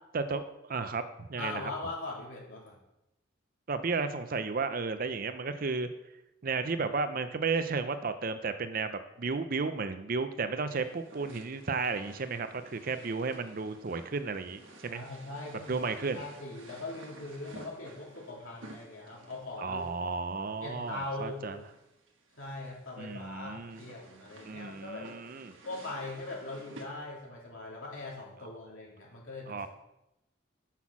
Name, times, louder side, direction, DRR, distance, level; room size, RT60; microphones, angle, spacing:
voice 1, 0.1-1.7 3.7-5.9 6.4-15.0 15.7-16.2 19.6-21.6 23.0-23.8 24.4-25.5 29.5-29.7, right 4 dB, 45° right, 10 dB, 0.5 m, -33 dB
voice 2, 1.4-2.8 14.9-19.9 20.6-21.4 22.4-25.1 25.6-29.6, left 2 dB, 80° left, -3 dB, 2.8 m, -41 dB
sound 1, 10.7-26.9, right 2 dB, 75° right, 1.2 m, -54 dB
6.1 x 5.7 x 6.0 m, 0.90 s
head